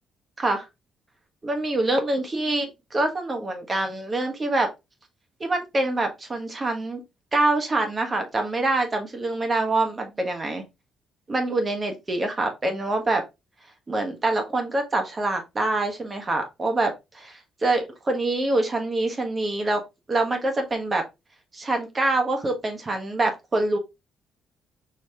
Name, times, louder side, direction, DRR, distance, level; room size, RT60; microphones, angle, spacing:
voice 1, 1.4-4.7 5.4-7.0 7.3-10.6 11.3-13.2 13.9-19.8 20.1-21.0 21.5-23.8, right 2 dB, 30° right, 1.3 m, -25 dB
4.8 x 3.1 x 3.4 m
cardioid pair, 90°, 0 cm